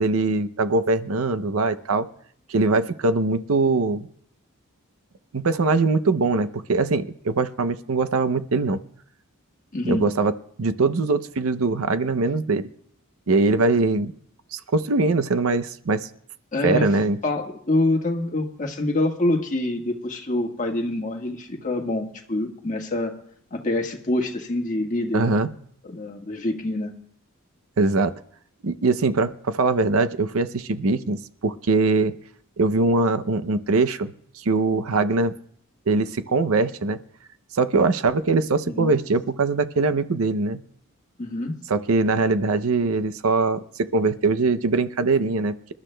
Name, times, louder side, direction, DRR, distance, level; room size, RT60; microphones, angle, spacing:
voice 1, 0.0-2.1 2.5-4.1 5.3-8.8 9.8-10.3 10.6-12.6 13.3-14.1 14.5-16.1 16.6-17.2 25.1-25.5 27.8-28.1 28.6-32.1 32.6-35.3 35.9-37.0 37.5-40.6 41.7-45.7, right 3 dB, 80° right, 12 dB, 0.6 m, -22 dB
voice 2, 9.7-10.0 16.5-16.9 17.2-23.1 23.5-25.5 25.8-26.9 38.7-39.0 41.2-41.5, left 1 dB, 35° left, 2 dB, 1.5 m, -26 dB
27.0 x 12.0 x 2.2 m, 0.66 s
head